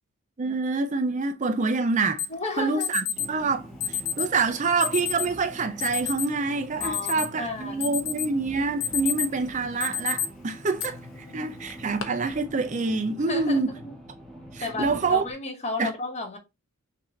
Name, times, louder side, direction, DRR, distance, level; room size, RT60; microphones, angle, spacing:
voice 1, 0.4-2.2 2.6-11.0 11.3-13.7 14.5-15.2 15.8-15.9, right 4 dB, 35° right, 0.5 m, -26 dB
Alarm, 2.2-2.3 2.8-3.3 3.8-4.3 4.8-5.3 5.8-6.3 6.7-7.4 7.8-8.3 8.7-9.4 9.8-10.3 10.8-10.9 11.7-12.0, left 8 dB, 70° left, 0.9 m, -29 dB
voice 2, 2.3-2.9 6.8-8.0 11.2-11.5 13.3-13.9 14.6-16.4, left 3 dB, 30° left, 1.1 m, -33 dB
sound 1, 3.2-15.3, equal, ahead, 1.0 m, -44 dB
6.2 x 2.7 x 3.1 m
head